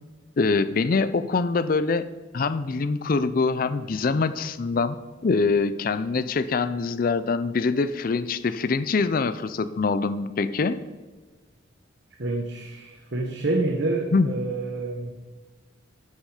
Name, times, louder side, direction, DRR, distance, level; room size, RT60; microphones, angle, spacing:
voice 1, 0.4-2.1 2.3-5.0 5.2-10.8 14.1-14.3, left 4 dB, 45° left, 13 dB, 0.4 m, -24 dB
voice 2, 12.2-15.2, right 2 dB, 55° right, 1 dB, 1.0 m, -28 dB
13.0 x 6.5 x 4.9 m, 1.3 s
head